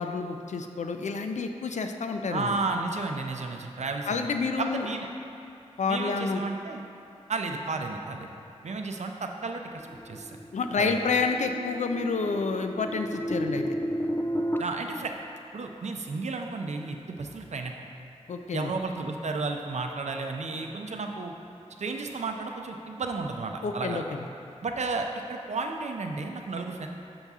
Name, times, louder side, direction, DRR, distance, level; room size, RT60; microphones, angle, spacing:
voice 1, 0.0-2.5 4.1-4.9 5.8-6.4 10.5-13.7 18.3-18.7 23.6-24.2, left 4 dB, 80° left, 5 dB, 0.4 m, -29 dB
voice 2, 2.3-4.3 4.6-5.1 5.9-6.8 7.3-8.3 8.6-9.6 10.0-10.4 10.8-11.0 14.6-15.1 15.5-17.7 18.5-21.3 21.8-24.0 24.6-26.9, right 3 dB, 70° right, 3 dB, 0.5 m, -32 dB
sound 1, 9.9-14.6, equal, 20° left, 0.4 m, -32 dB
7.0 x 5.5 x 3.6 m, 2.6 s
cardioid pair, 55°, 12 cm